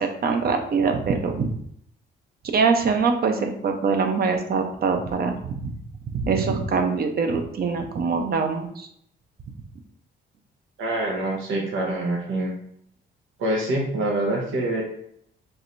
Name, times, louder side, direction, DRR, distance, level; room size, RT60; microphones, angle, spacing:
voice 1, 0.0-1.5 2.5-5.7 6.1-8.9, right 5 dB, 50° right, 5 dB, 0.7 m, -23 dB
voice 2, 10.8-12.5 13.4-14.8, right 1 dB, 85° right, -1 dB, 1.0 m, -25 dB
4.7 x 3.3 x 2.6 m, 0.69 s
cardioid pair, 90°, 20 cm